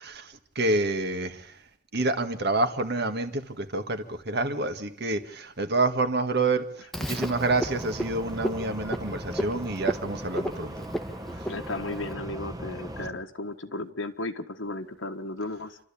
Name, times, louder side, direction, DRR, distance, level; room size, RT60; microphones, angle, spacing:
voice 1, 0.1-1.6 1.9-6.7 7.1-10.7, right 2 dB, 60° right, 7 dB, 1.9 m, -28 dB
Frog, 6.9-12.1, equal, ahead, 1.1 m, -34 dB
sound 1, 7.2-13.1, right 1 dB, 20° right, 1.2 m, -38 dB
voice 2, 11.5-15.8, left 2 dB, 90° left, 4 dB, 1.5 m, -35 dB
28.5 x 13.0 x 8.6 m, 0.65 s
head